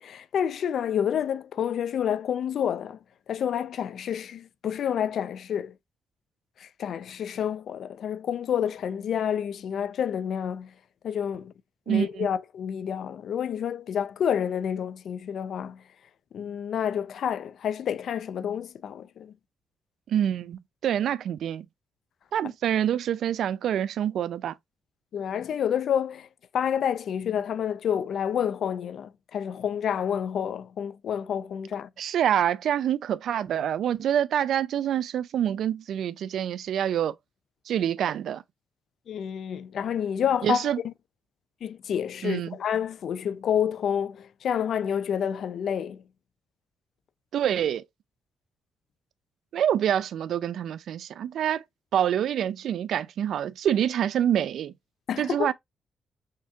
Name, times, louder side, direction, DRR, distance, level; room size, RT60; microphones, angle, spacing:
voice 1, 0.0-3.0 3.3-5.7 6.6-10.7 11.0-11.5 11.9-15.8 16.3-19.3 22.4-22.5 25.1-26.3 26.5-31.9 39.1-40.9 41.6-46.0 55.1-55.5, left 8 dB, 65° left, 0.4 m, -29 dB
voice 2, 11.9-12.3 20.1-21.7 22.3-24.5 32.0-37.1 37.7-38.4 40.4-40.8 42.2-42.6 47.3-47.8 49.5-51.6 51.9-54.7 55.2-55.5, right 10 dB, 75° right, 0.3 m, -26 dB
6.4 x 2.3 x 2.7 m
cardioid pair, 140°, 0 cm